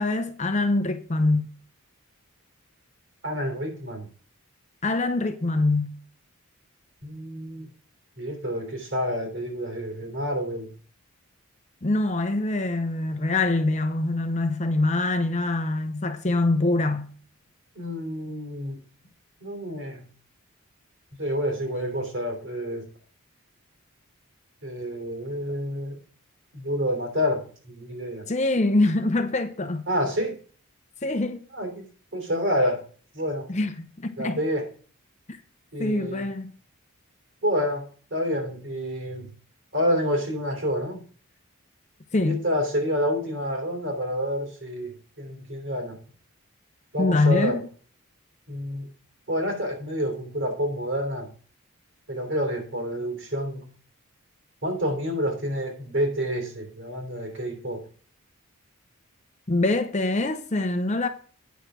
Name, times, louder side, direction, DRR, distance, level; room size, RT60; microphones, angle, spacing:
voice 1, 0.0-1.5 4.8-6.0 11.8-17.1 28.3-29.8 31.0-31.4 33.5-34.4 35.8-36.5 42.1-42.4 47.0-47.6 59.5-61.1, left 2 dB, 30° left, 0.7 m, -24 dB
voice 2, 3.2-4.1 7.0-7.7 8.2-10.7 17.7-18.8 19.4-20.1 21.2-22.8 24.6-26.0 26.5-28.3 29.9-30.3 31.5-31.8 32.1-32.8 33.1-33.5 34.2-34.7 35.7-36.3 37.4-39.3 39.7-41.0 42.2-46.0 46.9-47.6 48.5-48.9 49.3-51.3 52.1-53.7 54.6-57.8, equal, 55° right, 3.1 m, -28 dB
9.3 x 6.4 x 4.9 m
head